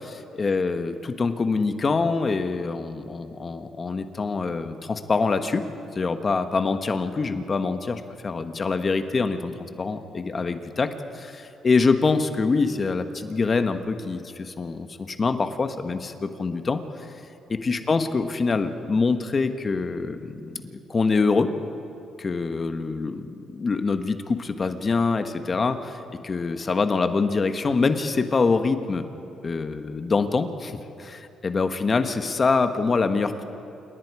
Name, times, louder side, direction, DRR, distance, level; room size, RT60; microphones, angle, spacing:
voice 1, 0.4-5.6 5.9-16.8 17.5-21.5 22.2-26.0 26.2-29.0 29.4-33.4, left 4 dB, 35° left, 8 dB, 1.3 m, -25 dB
28.0 x 19.0 x 4.9 m, 2.8 s
cardioid pair, 90°, 0 cm